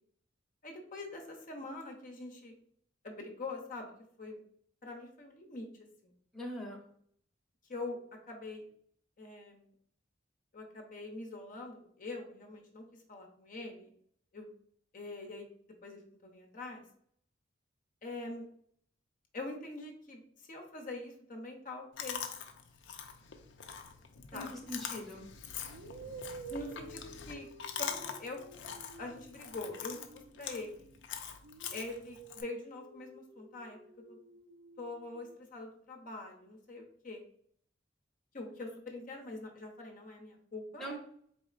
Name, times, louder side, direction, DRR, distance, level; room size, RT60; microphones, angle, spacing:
voice 1, 0.6-2.5 3.0-3.9 4.2-4.4 4.8-5.7 6.0-6.1 7.7-8.0 8.3-8.6 9.2-9.7 10.5-13.9 14.3-14.5 14.9-15.5 15.8-16.0 16.3-16.8 18.0-18.5 19.3-20.2 20.5-22.2 24.3-24.7 26.2-27.5 27.8-28.4 29.0-30.9 31.7-33.8 34.1-34.2 34.8-37.2 38.3-40.8, left 2 dB, 50° left, 2 dB, 0.7 m, -44 dB
voice 2, 6.3-6.8 24.3-25.3 40.8-41.0, equal, ahead, -2 dB, 0.8 m, -41 dB
Chewing mastication, 22.0-32.4, left 7 dB, 85° left, 0.5 m, -44 dB
sound 1, 24.6-24.9 25.7-31.0 31.4-35.4, right 3 dB, 85° right, 0.6 m, -51 dB
4.0 x 4.0 x 2.4 m, 0.63 s
head